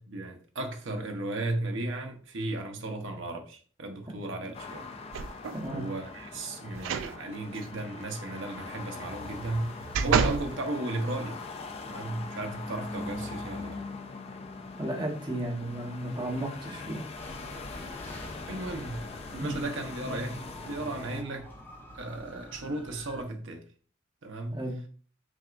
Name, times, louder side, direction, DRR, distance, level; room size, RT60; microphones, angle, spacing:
voice 1, 0.0-4.9 5.7-11.4 11.8-13.8 18.2-19.1 19.3-20.4 20.7-21.5 21.9-23.6 24.2-24.6, right 2 dB, 75° right, 0.8 m, -35 dB
sound 1, 4.5-21.2, left 3 dB, 30° left, 0.3 m, -42 dB
sound 2, 5.1-5.7 6.8-7.1 7.5-7.7 9.3-10.5 11.1-11.2, right 6 dB, 90° right, 0.4 m, -29 dB
voice 2, 5.5-5.9 14.8-17.0 19.4-19.5 24.5-24.8, right 1 dB, 25° right, 1.0 m, -34 dB
sound 3, 17.1-23.2, equal, 10° left, 0.9 m, -47 dB
6.0 x 2.3 x 2.5 m
head